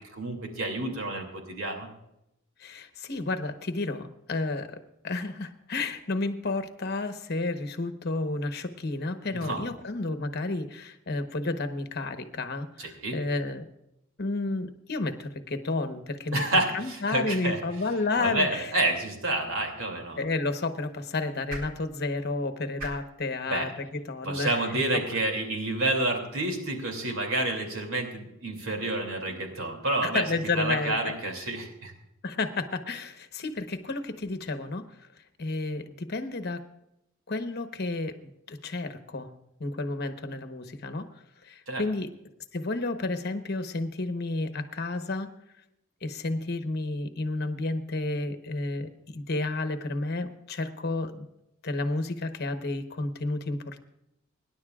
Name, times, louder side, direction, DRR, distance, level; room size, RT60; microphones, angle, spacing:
voice 1, 0.1-1.9 9.3-9.7 12.8-13.2 16.3-17.6 18.2-20.2 23.5-23.7 24.2-31.9 41.7-41.8, right 2 dB, 85° right, 3 dB, 2.7 m, -29 dB
voice 2, 2.6-13.7 14.2-16.4 16.7-18.7 20.2-25.1 30.0-31.2 32.2-35.1 35.4-36.6 37.3-39.3 39.6-41.1 41.4-42.1 42.5-45.3 46.0-51.3 51.6-53.8, left 2 dB, 50° left, 8 dB, 1.1 m, -31 dB
sound 1, 19.7-25.9, right 1 dB, 50° right, 4.0 m, -47 dB
25.0 x 10.5 x 2.4 m, 0.85 s
head